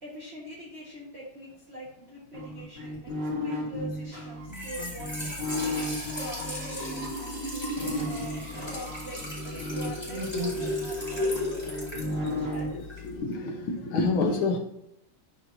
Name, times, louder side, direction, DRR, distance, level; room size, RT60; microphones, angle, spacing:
voice 1, 0.0-5.3 6.1-11.6 11.9-12.9, right 1 dB, 35° right, -6 dB, 1.6 m, -43 dB
sound 1, 2.3-7.1 7.8-12.7, left 1 dB, 60° right, 2.6 m, -34 dB
Trickle dribble / Fill (with liquid), 4.4-13.2, left 2 dB, 10° left, 2.6 m, -34 dB
voice 2, 12.7-14.6, left 3 dB, 85° left, 3 dB, 2.0 m, -28 dB
11.0 x 4.5 x 2.7 m, 0.82 s
omnidirectional pair, 2.2 m